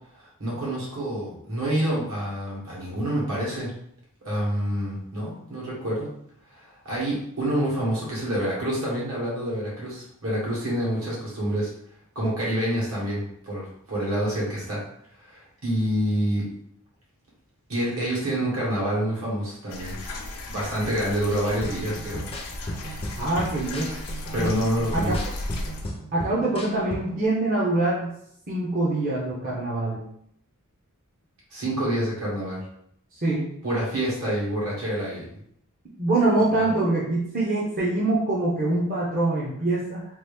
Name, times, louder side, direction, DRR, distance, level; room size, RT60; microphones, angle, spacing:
voice 1, 0.2-3.7 4.2-6.1 6.5-11.7 12.1-14.8 15.2-16.5 17.7-20.0 20.5-22.2 24.3-25.2 31.5-32.6 33.6-35.4 36.6-36.7, right 1 dB, 65° right, -5 dB, 1.4 m, -27 dB
sound 1, 19.7-25.9, left 1 dB, 85° left, 0.6 m, -35 dB
sound 2, 21.6-27.3, equal, 25° left, 0.5 m, -36 dB
voice 2, 23.2-23.9 24.3-24.5 24.9-25.2 26.1-28.1 28.5-30.0 33.2-33.5 36.0-40.1, right 2 dB, 40° right, -7 dB, 0.7 m, -24 dB
2.9 x 2.5 x 3.4 m, 0.71 s
head